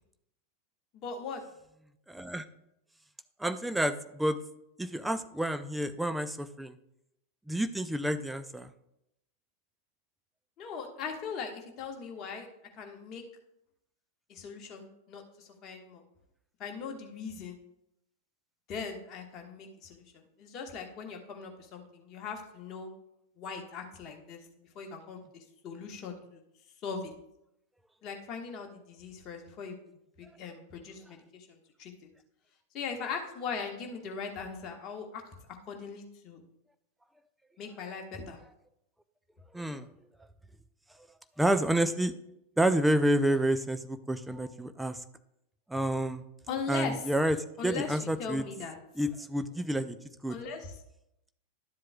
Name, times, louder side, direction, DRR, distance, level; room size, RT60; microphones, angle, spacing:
voice 1, 0.9-1.4 10.6-12.5 12.8-13.2 14.3-16.0 16.6-17.6 18.7-22.9 23.4-26.4 26.8-27.1 28.0-29.8 30.2-31.9 32.7-35.2 35.7-36.4 37.6-38.4 46.5-47.0 47.6-48.8 50.3-50.7, left 5 dB, 35° left, 2 dB, 1.3 m, -40 dB
voice 2, 2.1-2.4 3.4-4.4 4.8-6.8 7.5-8.7 39.5-39.9 41.4-42.1 42.6-45.0 45.7-46.2 46.7-47.4 47.6-48.4 49.0-50.0 50.2-50.4, right 1 dB, 5° right, 10 dB, 0.4 m, -29 dB
11.5 x 7.5 x 2.3 m, 0.82 s
figure-of-eight pair, 90°, 0 cm